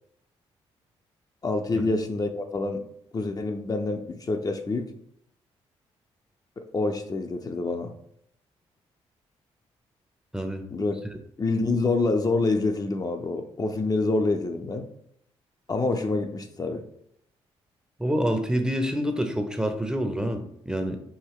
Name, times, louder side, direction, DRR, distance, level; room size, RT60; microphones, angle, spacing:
voice 1, 1.4-2.8 3.1-4.9 6.6-7.9 10.7-11.0 11.4-14.9 15.7-16.8, left 3 dB, 30° left, 5 dB, 0.5 m, -26 dB
voice 2, 10.3-10.6 18.0-21.0, equal, 5° right, 6 dB, 0.6 m, -27 dB
4.7 x 2.6 x 3.1 m, 0.72 s
supercardioid pair, 60°, 12 cm